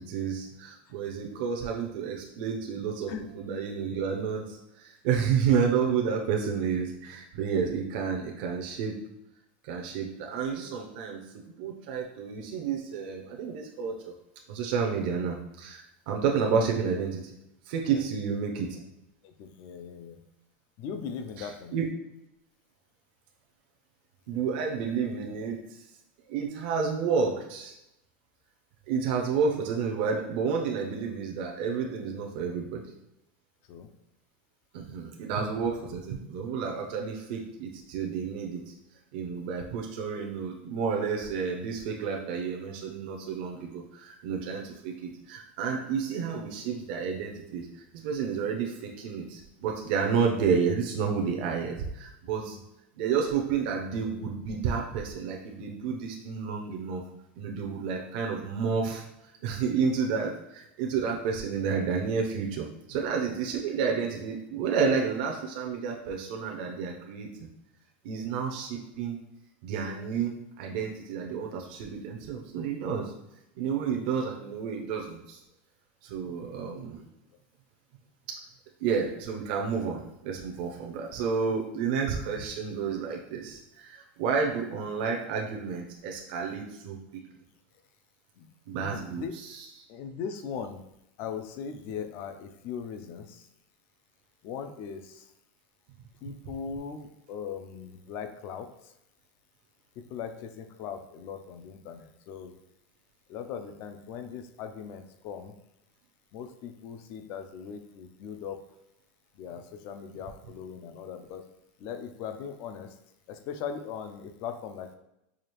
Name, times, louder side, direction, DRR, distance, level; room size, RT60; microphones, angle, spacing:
voice 1, 0.0-8.9 9.6-11.2 11.6-14.1 14.5-17.3 17.7-18.8 21.4-21.9 24.3-25.6 26.3-27.7 28.9-32.8 34.7-38.6 39.1-52.6 53.0-57.0 57.4-59.0 59.4-67.3 68.0-69.2 69.6-73.1 73.6-75.4 76.0-77.0 78.8-87.0 88.7-89.7, right 6 dB, 55° right, 0 dB, 0.6 m, -30 dB
voice 2, 19.2-20.2 20.8-21.8 33.7-33.9 52.4-52.6 70.7-70.8 76.3-76.7 88.4-88.5 88.8-89.3 89.9-90.8 91.2-93.5 94.4-95.3 96.2-98.9 100.1-102.5 103.3-105.5 106.3-108.6 109.3-111.5 111.8-112.9 113.3-115.0, left 7 dB, 40° left, 8 dB, 0.4 m, -39 dB
4.8 x 2.4 x 3.0 m, 0.85 s
supercardioid pair, 170°, 6 cm